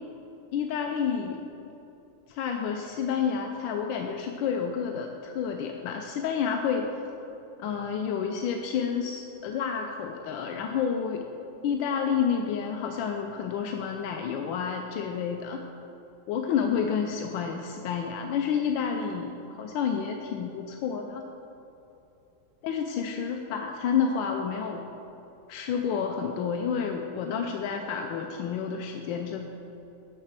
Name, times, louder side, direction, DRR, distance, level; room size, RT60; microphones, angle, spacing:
voice 1, 0.5-1.4 2.3-7.0 7.6-11.3 11.6-15.6 16.3-21.2 22.6-24.8 25.5-29.4, left 7 dB, 80° left, 3 dB, 1.3 m, -29 dB
7.5 x 5.8 x 7.4 m, 2.8 s
omnidirectional pair, 2.1 m